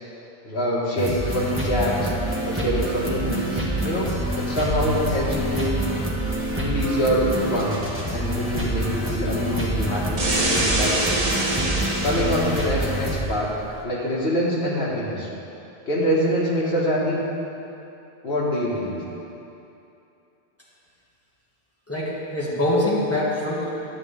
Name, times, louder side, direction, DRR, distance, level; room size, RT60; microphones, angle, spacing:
voice 1, 0.4-2.1 2.4-5.8 6.6-10.3 10.7-11.2 12.0-13.5 13.8-15.3 15.9-17.2 18.2-19.0, equal, 70° left, -5 dB, 1.8 m, -25 dB
sound 1, 1.0-13.2, right 1 dB, 10° right, 1.0 m, -27 dB
sound 2, 4.2-13.8, equal, 60° right, 1.1 m, -39 dB
sound 3, 10.2-12.6, right 1 dB, 40° right, 0.9 m, -24 dB
voice 2, 21.9-23.7, left 1 dB, 15° left, -7 dB, 1.6 m, -24 dB
11.0 x 7.4 x 3.4 m, 2.8 s
omnidirectional pair, 1.1 m